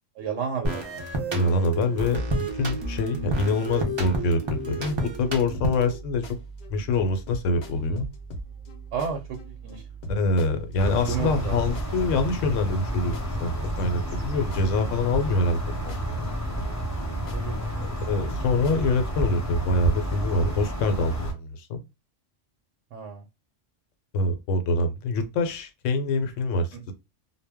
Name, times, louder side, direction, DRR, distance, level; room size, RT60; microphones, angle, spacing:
voice 1, 0.2-1.0 8.9-9.8 11.1-11.7 17.1-17.7 22.9-23.2 26.7-26.9, right 6 dB, 75° right, 0.9 m, -32 dB
sound 1, 0.6-6.0, right 1 dB, 40° right, 0.4 m, -30 dB
voice 2, 1.3-6.3 6.7-8.1 10.1-13.2 13.4-13.5 13.8-16.3 17.8-21.8 24.1-26.9, left 2 dB, 80° left, 0.9 m, -25 dB
sound 2, 4.8-19.0, right 2 dB, 50° left, 0.7 m, -40 dB
sound 3, 10.8-21.3, equal, 15° left, 0.7 m, -30 dB
2.2 x 2.0 x 3.4 m
omnidirectional pair, 1.3 m